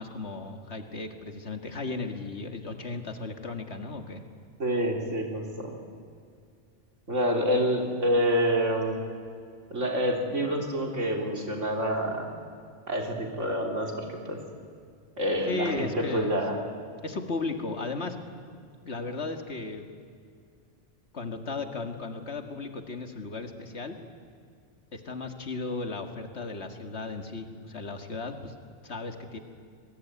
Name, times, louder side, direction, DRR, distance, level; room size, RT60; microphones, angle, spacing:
voice 1, 0.0-4.2 15.5-16.4 17.0-18.2 18.8-19.9 21.1-24.0 24.9-28.5 28.8-29.4, left 3 dB, 60° left, 6 dB, 2.2 m, -35 dB
voice 2, 4.6-5.7 7.1-9.0 9.7-12.3 12.9-14.4 15.2-16.6, equal, 80° right, 1 dB, 3.9 m, -27 dB
27.0 x 21.0 x 9.6 m, 2.2 s
omnidirectional pair, 1.3 m